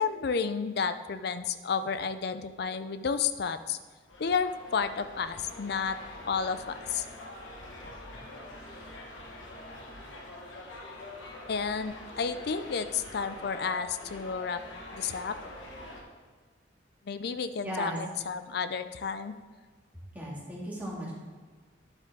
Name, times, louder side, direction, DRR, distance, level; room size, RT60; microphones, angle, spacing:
voice 1, 0.0-3.8 4.2-6.0 6.3-7.1 11.5-14.6 14.9-15.4 17.1-19.3, left 6 dB, 60° left, 12 dB, 0.4 m, -31 dB
sound 1, 4.1-16.0, left 1 dB, 90° left, 1.5 m, -45 dB
voice 2, 17.6-18.0 20.1-21.1, equal, 10° right, -6 dB, 2.2 m, -36 dB
9.9 x 7.9 x 3.6 m, 1.4 s
head